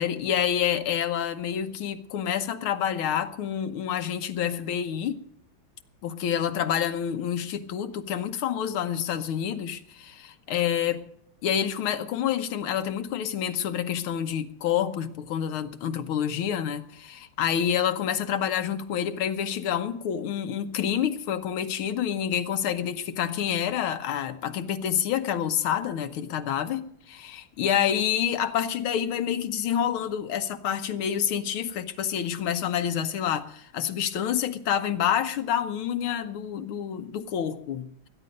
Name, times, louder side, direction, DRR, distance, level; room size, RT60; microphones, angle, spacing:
voice 1, 0.0-5.2 6.0-11.0 11.4-38.1, left 9 dB, 80° left, 1.8 m, -28 dB
20.5 x 10.0 x 5.3 m
omnidirectional pair, 2.3 m